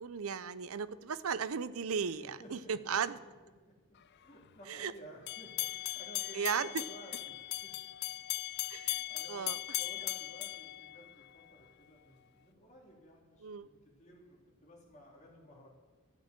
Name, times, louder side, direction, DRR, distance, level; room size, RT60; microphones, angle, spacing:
voice 1, 0.0-3.2 4.7-4.9 6.3-6.7 8.7-9.0 9.3-9.6 13.4-13.7, right 6 dB, 80° right, 16 dB, 0.6 m, -36 dB
voice 2, 2.0-8.1 8.5-8.8 9.1-15.7, right 1 dB, 35° left, -1 dB, 2.9 m, -56 dB
sound 1, 5.3-11.5, left 16 dB, 50° left, 0.3 m, -38 dB
13.0 x 6.7 x 9.0 m, 1.3 s
head